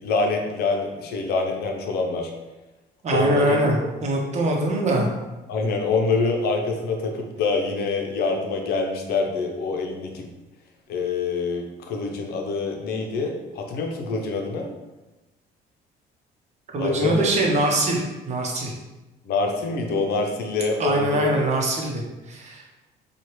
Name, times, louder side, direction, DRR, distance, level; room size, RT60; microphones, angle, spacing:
voice 1, 0.0-2.3 3.1-3.6 5.5-10.3 10.9-14.7 16.8-17.2 19.2-21.3, left 3 dB, 70° left, 2 dB, 0.7 m, -25 dB
voice 2, 3.0-5.1 16.7-18.7 20.8-22.7, right 1 dB, 40° right, 0 dB, 0.9 m, -23 dB
4.5 x 2.4 x 3.1 m, 1.1 s
cardioid pair, 110°, 17 cm